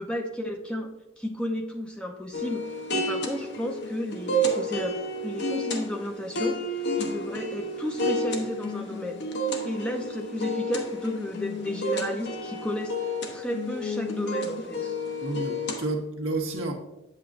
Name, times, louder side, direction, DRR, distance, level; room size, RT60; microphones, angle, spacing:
voice 1, 0.0-2.6 2.9-5.0 5.2-6.6 7.0-9.2 9.7-13.0 13.3-14.9, left 1 dB, 5° left, 2 dB, 0.7 m, -32 dB
sound 1, 2.3-15.9, equal, 55° left, 1.0 m, -31 dB
voice 2, 15.2-16.7, right 2 dB, 80° right, 2 dB, 1.3 m, -30 dB
8.5 x 7.7 x 2.6 m, 0.94 s
head